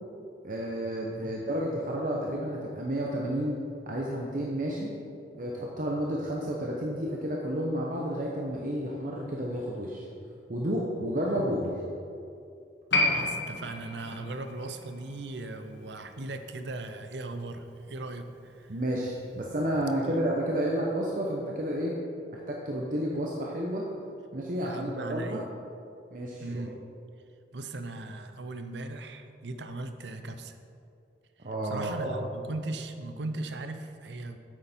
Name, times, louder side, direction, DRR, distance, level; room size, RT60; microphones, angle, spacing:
voice 1, 0.4-4.9 5.4-10.1 10.5-11.8 18.7-22.0 22.3-23.9 24.3-25.4 26.1-26.6 31.4-32.2, equal, 50° right, -2 dB, 0.9 m, -31 dB
Piano, 12.9-19.9 20.1-20.2, left 2 dB, 80° left, 1.5 m, -34 dB
voice 2, 13.0-18.7 20.0-20.2 24.6-25.5 26.4-26.7 27.5-30.6 31.4-34.4, right 2 dB, 75° right, 8 dB, 0.7 m, -38 dB
8.7 x 8.6 x 4.4 m, 2.5 s
head